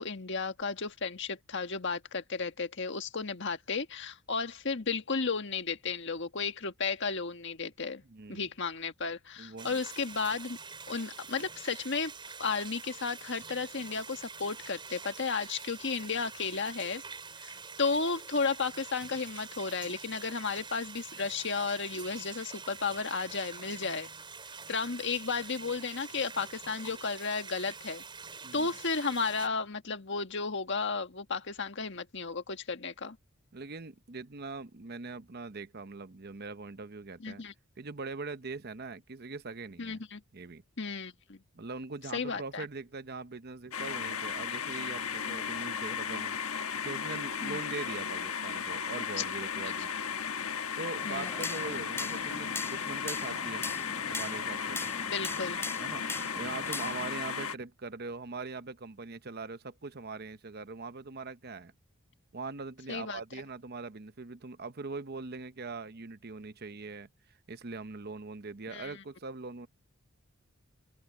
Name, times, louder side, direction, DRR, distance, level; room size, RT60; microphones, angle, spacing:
voice 1, 0.0-8.0 8.3-10.6 10.9-12.1 12.4-17.0 17.4-24.1 24.7-28.0 28.5-33.2 37.2-37.5 39.8-40.2 40.8-41.4 42.1-42.6 47.4-47.6 49.2-49.3 49.9-50.0 51.0-51.5 55.0-55.7 62.9-63.2 68.7-69.0, left 4 dB, 55° left, 1.6 m, -33 dB
voice 2, 8.1-8.5 9.4-9.8 28.4-28.7 33.5-37.4 37.8-40.0 40.3-40.6 41.5-46.4 46.8-49.9 50.8-53.7 54.1-54.9 55.8-56.0 56.4-61.7 62.3-67.1 67.5-69.7, right 3 dB, 50° right, 0.9 m, -41 dB
sound 1, 9.6-29.5, right 5 dB, 25° right, 5.2 m, -46 dB
sound 2, 43.7-57.5, left 7 dB, 85° left, 1.2 m, -35 dB
sound 3, 51.0-57.1, left 3 dB, 10° left, 3.2 m, -41 dB
open air
head